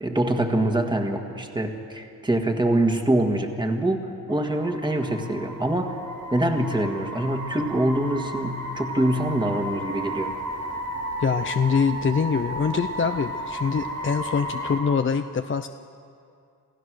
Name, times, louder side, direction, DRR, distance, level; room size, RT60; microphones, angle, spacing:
voice 1, 0.0-6.0 6.3-10.3, right 1 dB, 15° right, 4 dB, 1.7 m, -24 dB
sound 1, 4.3-14.8, right 1 dB, 55° right, 3.3 m, -34 dB
voice 2, 11.2-15.7, left 6 dB, 35° left, 8 dB, 0.6 m, -24 dB
28.0 x 15.5 x 6.4 m, 2.4 s
cardioid pair, 95°, 35 cm